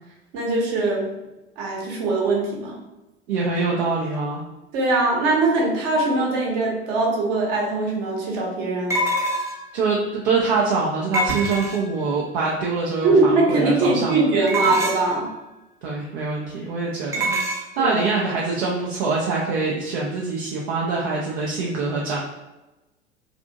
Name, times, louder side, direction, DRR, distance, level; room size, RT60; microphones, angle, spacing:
voice 1, 0.3-1.1 1.6-2.7 4.7-9.0 13.0-15.3 17.8-18.0, right 2 dB, 50° right, -2 dB, 1.0 m, -21 dB
voice 2, 3.3-4.4 9.7-14.3 14.6-14.7 15.8-17.4 17.8-22.2, right 4 dB, 65° right, -3 dB, 0.6 m, -24 dB
sound 1, 7.3-7.4 8.9-9.7 11.1-12.0 14.5-15.2 17.1-17.6, right 1 dB, 10° right, 0.3 m, -25 dB
2.6 x 2.5 x 2.6 m, 1.0 s
figure-of-eight pair, 75°, 33 cm